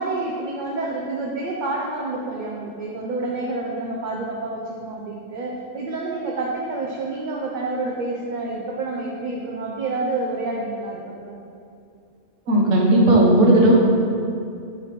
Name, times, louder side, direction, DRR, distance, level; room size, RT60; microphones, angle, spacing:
voice 1, 0.0-11.4, right 2 dB, 50° right, -2 dB, 0.7 m, -28 dB
voice 2, 12.5-13.7, right 1 dB, 80° right, -3 dB, 1.6 m, -15 dB
7.7 x 3.4 x 5.9 m, 2.6 s
omnidirectional pair, 1.3 m